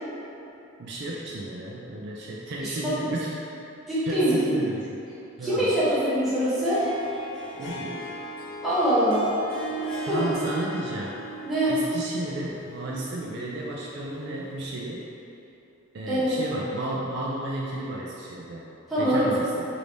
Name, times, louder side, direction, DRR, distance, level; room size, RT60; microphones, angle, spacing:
voice 1, 0.8-3.5 4.1-5.0 5.4-5.8 7.6-8.0 10.0-11.2 11.6-15.0 15.9-18.6 19.0-19.7, right 1 dB, 55° right, -4 dB, 0.4 m, -33 dB
voice 2, 3.9-4.3 5.4-6.8 8.6-9.3 10.1-10.2 11.4-11.7 16.1-16.3 18.9-19.3, right 1 dB, ahead, -13 dB, 1.2 m, -23 dB
Harp, 6.5-14.8, right 1 dB, 65° left, 0.6 m, -38 dB
4.6 x 2.6 x 3.3 m, 2.9 s
head